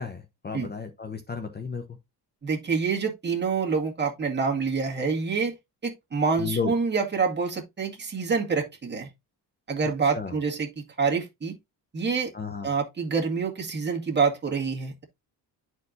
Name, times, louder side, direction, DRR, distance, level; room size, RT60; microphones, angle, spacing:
voice 1, 0.0-2.0 6.4-6.7 10.1-10.4 12.3-12.7, left 5 dB, 25° left, 0.7 m, -33 dB
voice 2, 2.4-5.6 5.8-9.1 9.7-11.5 11.9-12.3 12.6-15.0, right 5 dB, 25° right, 2.0 m, -27 dB
10.5 x 4.5 x 2.6 m
cardioid pair, 130°, 41 cm